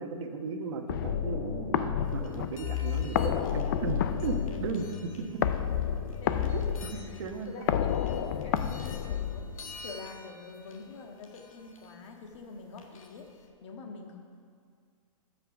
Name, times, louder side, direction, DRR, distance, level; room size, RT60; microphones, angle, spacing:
voice 1, 0.0-5.4 6.5-7.6, right 5 dB, 55° right, 4 dB, 1.2 m, -36 dB
sound 1, 0.9-9.9, left 9 dB, 35° left, 0.4 m, -30 dB
sound 2, 2.0-13.5, left 3 dB, 75° left, 1.6 m, -52 dB
voice 2, 6.2-6.6 6.9-14.2, left 4 dB, 55° left, 2 dB, 1.7 m, -46 dB
16.0 x 5.9 x 5.9 m, 2.2 s
hypercardioid pair, 165°, 18 cm